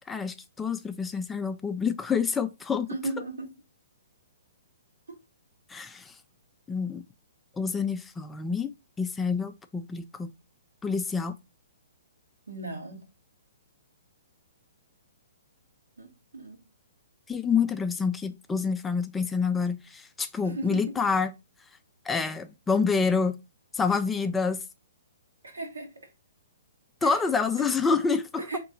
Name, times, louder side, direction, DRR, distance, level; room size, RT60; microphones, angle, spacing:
voice 1, 0.1-2.9 5.7-6.2 6.7-7.1 7.6-10.3 10.8-11.4 17.3-21.3 22.1-23.4 23.7-24.6 27.0-28.4, left 5 dB, 10° left, 0.3 m, -27 dB
voice 2, 2.9-3.5 5.1-5.2 12.5-13.0 16.0-16.1 16.3-16.6 20.4-21.0 25.4-26.1 27.0-27.2 27.6-27.7 28.4-28.6, right 2 dB, 90° right, 1.4 m, -36 dB
3.6 x 3.0 x 3.9 m
hypercardioid pair, 135°, 0 cm